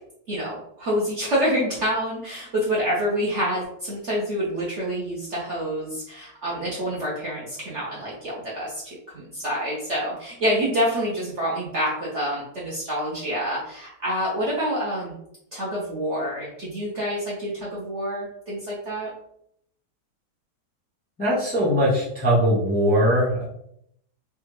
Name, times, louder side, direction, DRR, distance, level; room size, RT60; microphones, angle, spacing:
voice 1, 0.3-15.2 15.5-19.1, equal, 55° right, -6 dB, 0.8 m, -27 dB
voice 2, 21.2-23.5, equal, 10° left, -8 dB, 0.6 m, -20 dB
3.3 x 2.3 x 3.1 m, 0.73 s
omnidirectional pair, 1.9 m